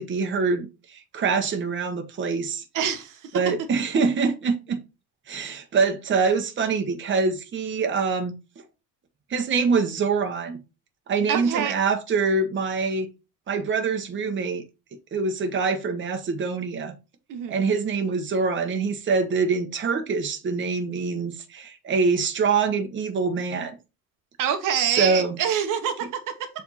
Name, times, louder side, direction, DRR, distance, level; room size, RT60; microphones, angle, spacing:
voice 1, 0.0-2.6 3.3-4.8 5.3-8.6 9.3-10.6 11.1-13.1 13.5-14.6 15.1-16.9 17.5-23.7 25.0-25.4, right 4 dB, 35° right, 1.1 m, -25 dB
voice 2, 2.7-3.4 11.3-11.8 17.3-17.7 24.4-26.5, right 8 dB, 70° right, 1.2 m, -26 dB
7.2 x 3.5 x 4.1 m
cardioid pair, 140°, 33 cm